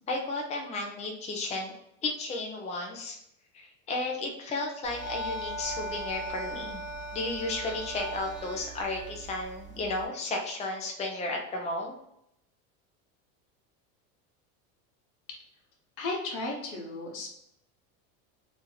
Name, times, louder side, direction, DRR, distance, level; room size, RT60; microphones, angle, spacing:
voice 1, 0.1-1.7 2.0-3.2 3.5-6.8 7.1-11.9, left 2 dB, 15° left, 1 dB, 0.6 m, -33 dB
sound 1, 4.8-10.0, right 1 dB, 30° right, 1.0 m, -38 dB
voice 2, 16.0-17.3, left 2 dB, 70° left, 1 dB, 1.3 m, -34 dB
3.1 x 2.7 x 3.8 m, 0.77 s
supercardioid pair, 115°, 39 cm